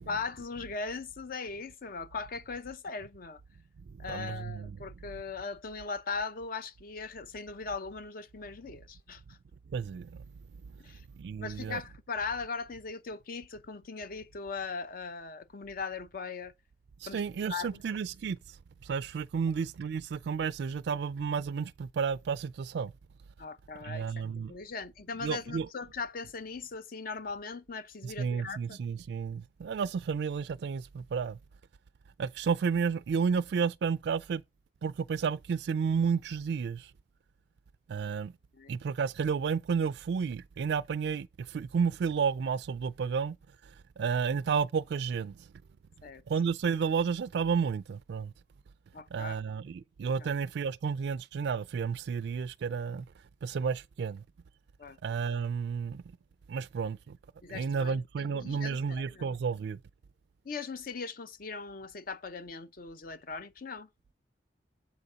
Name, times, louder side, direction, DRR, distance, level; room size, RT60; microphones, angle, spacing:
voice 1, 0.0-3.4 4.0-9.4 10.8-11.0 11.4-16.5 17.1-17.8 19.5-19.6 23.4-28.8 38.5-38.7 46.0-46.2 48.9-49.4 50.2-50.4 54.8-55.0 57.4-59.3 60.4-63.9, left 4 dB, 55° left, 0.6 m, -39 dB
voice 2, 4.1-4.7 9.7-10.1 11.2-11.8 17.0-18.4 18.8-22.9 23.8-24.5 25.2-25.7 28.0-31.4 32.2-34.4 34.8-36.9 37.9-38.3 38.7-43.4 44.0-45.4 46.3-48.3 49.1-53.0 53.4-54.2 55.0-56.0 56.5-57.2 57.5-59.8, right 6 dB, 70° right, 0.3 m, -31 dB
7.3 x 4.0 x 4.9 m
head